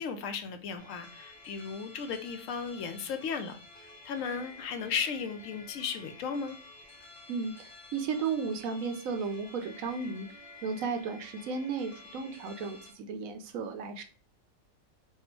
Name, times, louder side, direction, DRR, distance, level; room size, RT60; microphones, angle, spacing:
voice 1, 0.0-3.6 4.0-6.6, left 6 dB, 70° left, 8 dB, 0.9 m, -35 dB
sound 1, 0.8-12.9, left 3 dB, 40° left, 0.8 m, -51 dB
voice 2, 7.3-10.3 10.6-14.0, right 5 dB, 80° right, 6 dB, 1.0 m, -34 dB
3.4 x 2.4 x 4.3 m, 0.37 s
omnidirectional pair, 1.4 m